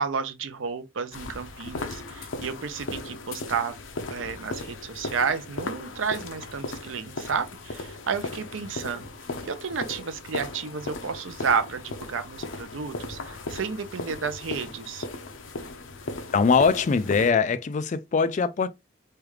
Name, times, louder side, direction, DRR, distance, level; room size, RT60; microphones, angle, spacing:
voice 1, 0.0-3.8 4.1-9.1 9.4-15.1, right 6 dB, 85° right, 0.5 m, -31 dB
sound 1, 1.1-17.3, left 3 dB, 85° left, 0.6 m, -37 dB
voice 2, 16.3-18.7, left 5 dB, 40° left, 0.3 m, -22 dB
3.2 x 2.4 x 3.1 m
head